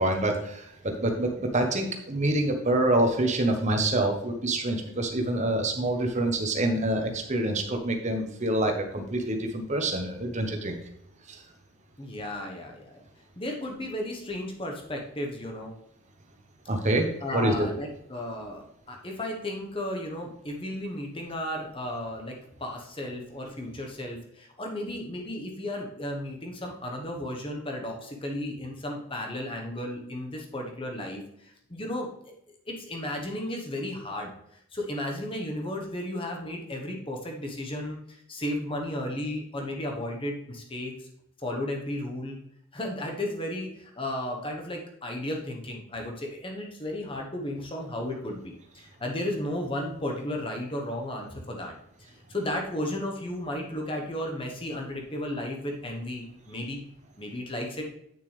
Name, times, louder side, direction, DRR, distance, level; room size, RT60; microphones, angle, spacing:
voice 1, 0.0-10.7 11.3-11.4 16.7-17.5, right 1 dB, 30° right, 4 dB, 1.1 m, -26 dB
voice 2, 12.0-13.0 13.4-15.7 17.2-32.3 32.7-41.1 41.4-42.4 42.7-51.7 52.0-56.8 57.2-57.9, left 1 dB, 25° left, 1 dB, 1.2 m, -34 dB
8.9 x 6.6 x 3.4 m, 0.75 s
head